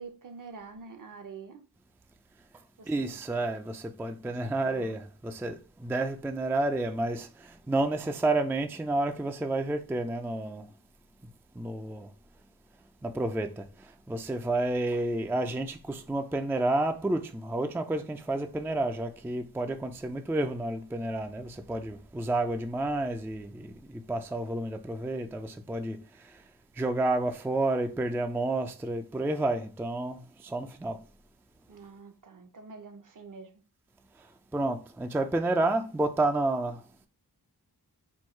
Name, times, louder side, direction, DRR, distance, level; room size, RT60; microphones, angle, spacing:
voice 1, 0.0-1.6 2.8-3.2 4.2-5.0 31.7-33.6, right 4 dB, 55° right, 0.7 m, -46 dB
voice 2, 2.9-5.5 5.8-7.3 7.7-10.6 11.6-12.1 13.0-13.5 14.1-23.5 24.1-26.0 26.8-30.2 30.5-31.0 34.5-36.8, right 2 dB, 5° right, 0.3 m, -30 dB
4.5 x 2.3 x 4.3 m
wide cardioid pair, 115°, 39 cm